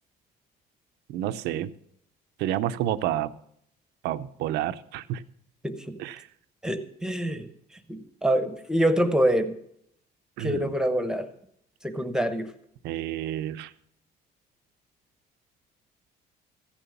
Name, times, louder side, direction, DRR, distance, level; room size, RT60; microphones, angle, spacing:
voice 1, 1.1-1.7 2.4-3.3 4.0-5.2 6.0-6.3 10.4-10.7 12.8-13.7, right 12 dB, 85° right, 13 dB, 0.6 m, -29 dB
voice 2, 5.6-6.0 6.6-7.5 7.9-9.6 10.4-11.3 11.8-12.5, right 1 dB, 5° right, 10 dB, 1.0 m, -25 dB
14.5 x 7.0 x 7.0 m, 0.71 s
cardioid pair, 110°, 17 cm